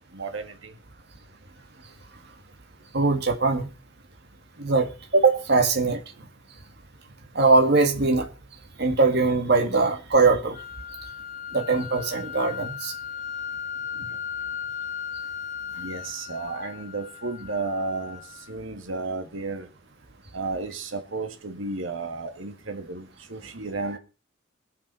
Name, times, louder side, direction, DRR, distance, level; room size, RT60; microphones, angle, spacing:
voice 1, 0.1-0.7 15.8-18.2 18.5-19.7 20.3-24.0, right 3 dB, 75° right, 1.9 m, -33 dB
voice 2, 2.9-3.7 4.6-6.0 7.4-8.3 8.8-10.6 11.5-12.9 14.0-14.1, right 3 dB, 55° right, 2.0 m, -21 dB
sound 1, 10.5-18.5, left 7 dB, 40° left, 1.4 m, -36 dB
22.0 x 7.3 x 5.5 m
head